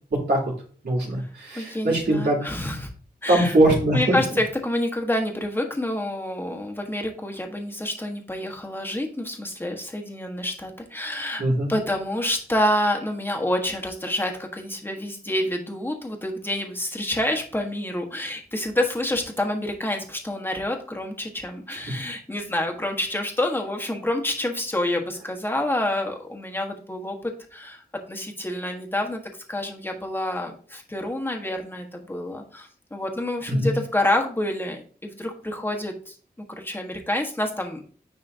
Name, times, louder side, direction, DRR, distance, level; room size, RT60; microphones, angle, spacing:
voice 1, 0.8-2.5 3.3-4.2 11.4-11.7 21.9-22.0 33.5-33.7, right 1 dB, 85° right, -5 dB, 2.8 m, -21 dB
voice 2, 1.5-2.9 3.2-3.6 3.9-11.4 11.7-27.8 28.1-29.2 29.5-36.1 36.6-37.8, left 1 dB, 15° left, 2 dB, 1.3 m, -28 dB
9.7 x 3.6 x 2.7 m, 0.43 s
wide cardioid pair, 95°, 17 cm